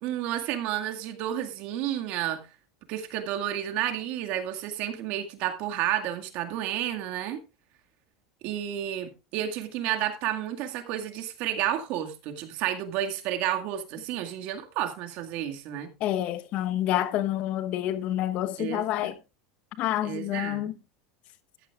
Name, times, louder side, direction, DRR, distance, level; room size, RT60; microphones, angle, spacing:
voice 1, 0.0-2.4 2.9-7.4 8.4-15.9 18.6-19.1 20.0-20.7, right 11 dB, 60° right, 2.0 m, -31 dB
voice 2, 16.0-19.1 19.8-20.7, left 13 dB, 50° left, 1.0 m, -28 dB
14.0 x 11.5 x 2.4 m
supercardioid pair, 110°, 3 cm